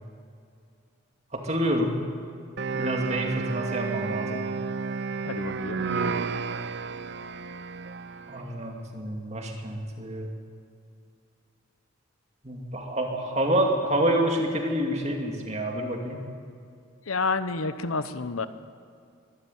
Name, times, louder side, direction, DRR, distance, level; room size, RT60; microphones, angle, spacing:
voice 1, 1.3-2.0 2.7-4.4 8.3-10.3 12.4-16.2, right 1 dB, 30° right, 2 dB, 2.5 m, -28 dB
sound 1, 2.6-8.5, right 4 dB, 55° right, 0.6 m, -31 dB
voice 2, 5.2-5.8 17.1-18.5, left 4 dB, 80° left, 12 dB, 1.0 m, -29 dB
23.5 x 13.0 x 9.4 m, 2.4 s
head